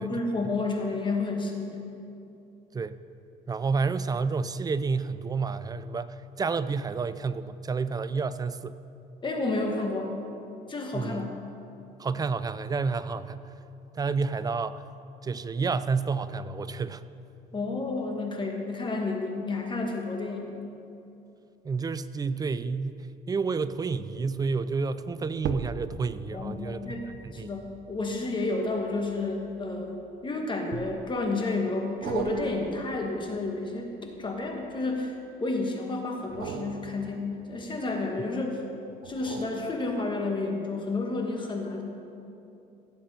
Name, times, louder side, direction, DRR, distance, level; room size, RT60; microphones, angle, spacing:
voice 1, 0.0-1.9 9.2-10.1 10.7-11.3 17.5-20.6 26.3-35.1 35.4-38.6 39.0-41.8, left 3 dB, 30° left, 2 dB, 1.5 m, -31 dB
voice 2, 3.5-8.8 10.9-11.3 12.0-13.5 13.9-14.8 15.2-17.0 21.6-23.0 23.3-27.0 27.2-27.5, right 4 dB, 20° right, 14 dB, 0.4 m, -30 dB
sound 1, 25.4-30.0 30.7-31.3 32.0-35.0 36.2-38.3 39.0-40.4 40.9-41.0, right 8 dB, 65° right, 0.7 m, -41 dB
16.5 x 7.6 x 4.3 m, 2.8 s
cardioid pair, 110°, 17 cm